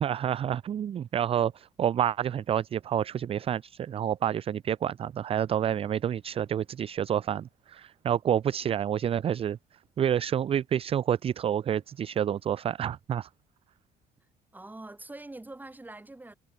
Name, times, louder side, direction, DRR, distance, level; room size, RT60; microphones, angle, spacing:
voice 1, 0.0-9.6 10.0-13.3, right 9 dB, 35° right, 0.4 m, -28 dB
voice 2, 14.5-16.3, right 2 dB, 10° right, 2.3 m, -44 dB
cardioid pair, 110°, 17 cm